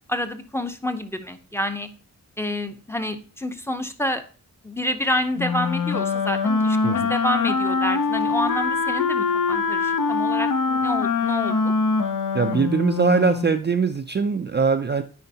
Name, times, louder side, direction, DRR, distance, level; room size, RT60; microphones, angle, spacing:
voice 1, 0.1-1.9 2.4-4.2 4.6-11.6, left 1 dB, 10° left, 7 dB, 0.6 m, -28 dB
Wind instrument woodwind instrument, 5.4-13.5, left 4 dB, 70° left, 0.7 m, -23 dB
voice 2, 12.3-15.0, right 5 dB, 35° right, 6 dB, 0.4 m, -22 dB
9.5 x 4.4 x 2.8 m, 0.38 s
wide cardioid pair, 85°, 33 cm